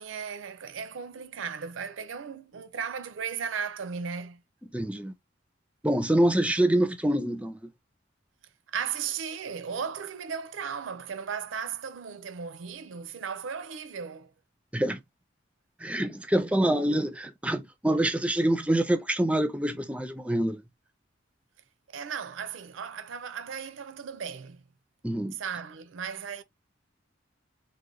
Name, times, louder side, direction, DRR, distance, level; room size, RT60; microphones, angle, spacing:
voice 1, 0.0-4.4 8.7-14.3 21.9-24.6 25.4-26.4, right 6 dB, 80° right, 0.5 m, -36 dB
voice 2, 4.7-5.1 5.8-7.7 14.7-15.0 15.8-20.6 25.0-25.4, right 1 dB, 5° right, 0.4 m, -26 dB
3.8 x 2.1 x 3.1 m
head